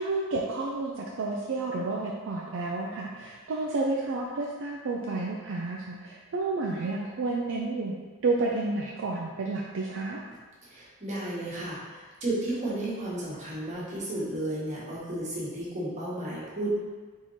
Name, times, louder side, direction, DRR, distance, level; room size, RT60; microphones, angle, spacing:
voice 1, 0.0-8.0 8.2-10.2, right 3 dB, 65° right, -2 dB, 0.4 m, -30 dB
voice 2, 10.6-16.8, right 1 dB, 35° right, -7 dB, 1.3 m, -33 dB
4.1 x 3.6 x 3.1 m, 1.4 s
head